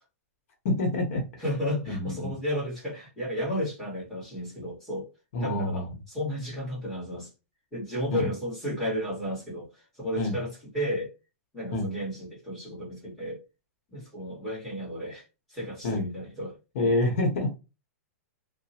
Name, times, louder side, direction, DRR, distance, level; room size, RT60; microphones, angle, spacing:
voice 1, 0.6-1.2 1.9-2.3 5.3-5.9 8.1-8.3 10.2-10.4 11.7-11.9 15.8-16.0 16.7-17.5, left 2 dB, 60° left, 1.0 m, -27 dB
voice 2, 1.4-5.1 5.4-7.3 7.7-11.1 11.5-13.4 13.9-16.9, equal, 5° left, 1.6 m, -33 dB
2.8 x 2.1 x 2.8 m
hypercardioid pair, 150°, 8 cm